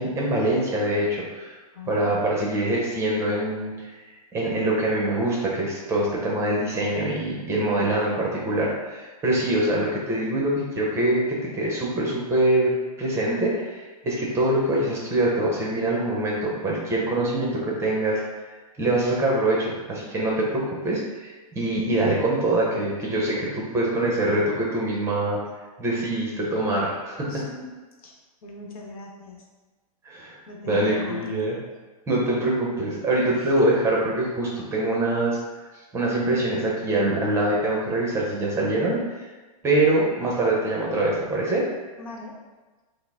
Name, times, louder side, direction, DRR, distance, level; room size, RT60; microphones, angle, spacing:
voice 1, 0.0-1.5 1.9-4.1 4.3-12.7 13.0-18.2 18.8-25.4 25.8-27.3 30.0-30.3 30.7-31.6 32.1-35.4 35.9-39.2 39.6-41.7, right 1 dB, 15° right, -3 dB, 0.7 m, -24 dB
voice 2, 1.7-2.2 27.2-29.5 30.5-31.3 33.3-33.6 42.0-42.4, left 3 dB, 70° left, 0 dB, 1.0 m, -40 dB
5.7 x 2.0 x 3.5 m, 1.2 s
hypercardioid pair, 145°, 20 cm